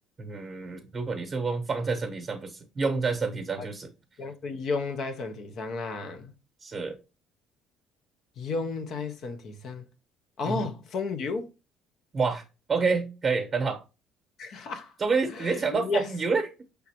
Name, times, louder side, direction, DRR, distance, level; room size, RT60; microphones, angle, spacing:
voice 1, 0.2-3.9 6.6-7.0 10.4-10.7 12.1-12.4 12.7-13.8 15.0-16.5, right 4 dB, 30° right, 0.8 m, -28 dB
voice 2, 4.2-6.3 8.4-9.8 10.4-11.5 14.4-14.9 15.3-16.1, left 4 dB, 60° left, 0.6 m, -33 dB
4.9 x 3.5 x 2.8 m
supercardioid pair, 90°, 0 cm